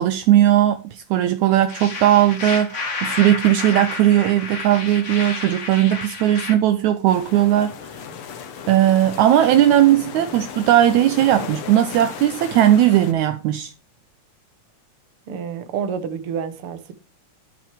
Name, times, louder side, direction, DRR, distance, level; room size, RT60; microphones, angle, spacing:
voice 1, 0.0-7.8 8.7-13.7, right 12 dB, 75° right, 1.9 m, -17 dB
sound 1, 1.7-6.5, left 4 dB, 30° left, 1.4 m, -30 dB
sound 2, 7.1-13.1, left 7 dB, 55° left, 1.8 m, -35 dB
voice 2, 15.3-16.9, right 7 dB, 55° right, 1.9 m, -29 dB
12.5 x 6.0 x 5.0 m
omnidirectional pair, 3.7 m